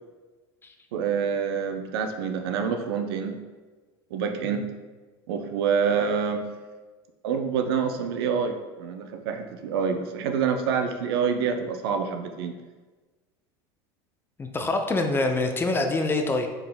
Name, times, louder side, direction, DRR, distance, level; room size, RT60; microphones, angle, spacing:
voice 1, 0.9-3.4 4.1-4.7 5.3-6.5 7.2-12.5, right 6 dB, 80° right, 6 dB, 0.4 m, -27 dB
voice 2, 14.4-16.5, left 2 dB, 15° left, 5 dB, 0.4 m, -25 dB
3.8 x 3.5 x 2.2 m, 1.3 s
supercardioid pair, 95°, 13 cm